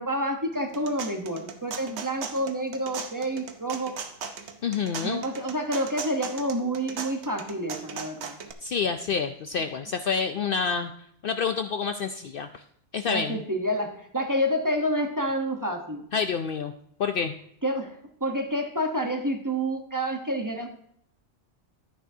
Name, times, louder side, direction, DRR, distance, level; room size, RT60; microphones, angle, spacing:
voice 1, 0.0-3.9 5.0-8.4 13.0-16.1 17.6-18.0 18.2-20.7, equal, 20° right, 3 dB, 0.9 m, -28 dB
sound 1, 0.5-8.5, right 6 dB, 70° right, 1.1 m, -38 dB
voice 2, 4.6-5.2 8.6-10.9 11.2-12.5 12.9-13.4 16.1-16.7 17.0-17.3, left 6 dB, 60° left, 8 dB, 0.6 m, -28 dB
11.5 x 10.0 x 2.7 m, 0.69 s
omnidirectional pair, 1.2 m